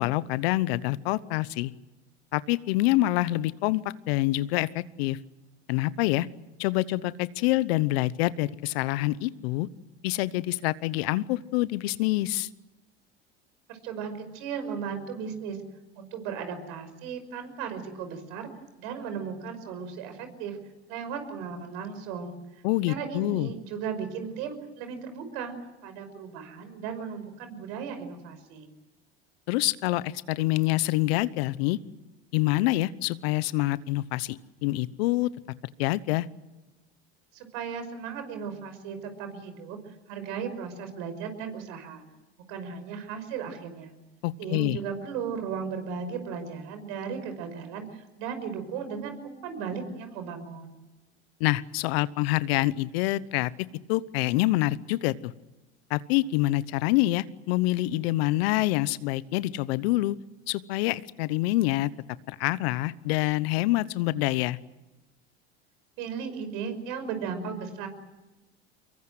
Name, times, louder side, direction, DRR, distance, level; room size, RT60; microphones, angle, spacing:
voice 1, 0.0-1.7 2.3-3.8 4.1-5.2 5.7-6.3 6.6-9.7 10.0-12.5 22.6-23.5 29.5-31.8 32.3-35.3 35.8-36.3 44.2-44.8 51.4-53.5 53.9-55.3 55.9-60.2 60.5-61.9 62.3-64.6, left 17 dB, 70° left, 18 dB, 1.0 m, -26 dB
voice 2, 13.7-15.6 16.0-18.5 18.8-20.6 20.9-25.5 25.8-28.7 37.3-42.0 42.5-43.9 44.4-50.7 66.0-67.9, right 6 dB, 65° right, 8 dB, 5.7 m, -36 dB
25.0 x 22.5 x 7.9 m, 1.1 s
hypercardioid pair, 85°, 32 cm